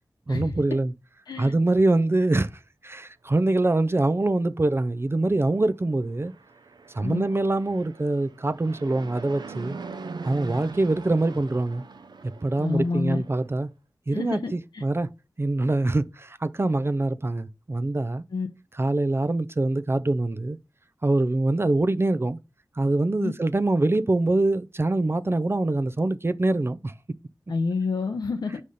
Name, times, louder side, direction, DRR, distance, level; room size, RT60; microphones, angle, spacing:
voice 1, 0.3-0.9 1.4-2.5 2.8-6.3 6.9-9.8 10.2-11.8 12.2-13.7 14.1-15.1 15.4-18.2 18.8-20.6 21.0-22.4 22.8-26.9, right 2 dB, 35° right, 0.5 m, -24 dB
Fixed-wing aircraft airplane, 6.1-13.5, right 4 dB, 85° right, 0.6 m, -41 dB
voice 2, 12.6-13.2 14.1-14.8 18.3-18.5 23.2-23.3 27.5-28.6, left 4 dB, 85° left, 0.7 m, -28 dB
5.0 x 4.2 x 5.3 m
wide cardioid pair, 50°, 7 cm